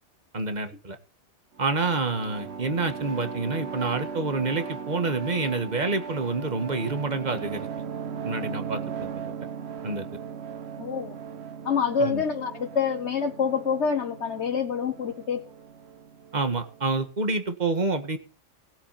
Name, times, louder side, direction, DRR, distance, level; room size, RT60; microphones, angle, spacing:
voice 1, 0.3-1.0 1.6-7.7 8.2-9.3 9.8-10.1 12.0-12.2 16.3-18.2, right 3 dB, 35° right, 8 dB, 1.8 m, -28 dB
sound 1, 1.5-17.0, right 6 dB, 65° right, 1.2 m, -38 dB
voice 2, 10.8-11.1 11.6-15.4, left 6 dB, 65° left, 4 dB, 1.5 m, -26 dB
19.0 x 8.3 x 4.3 m, 0.36 s
omnidirectional pair, 1.2 m